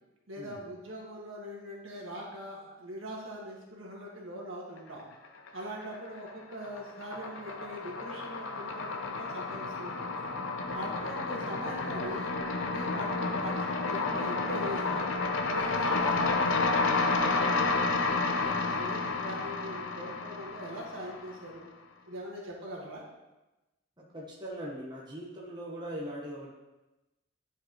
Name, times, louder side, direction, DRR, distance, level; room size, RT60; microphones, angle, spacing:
voice 1, 0.3-5.1 5.5-10.2 10.7-12.3 12.7-15.0 15.5-21.7 22.1-23.0, equal, 80° right, -3 dB, 1.7 m, -41 dB
sound 1, 5.2-6.0 6.3-21.5, left 3 dB, 75° left, 0.7 m, -31 dB
voice 2, 10.6-10.9 24.0-26.5, equal, 20° right, -4 dB, 1.0 m, -41 dB
10.5 x 4.7 x 3.0 m, 1.0 s
head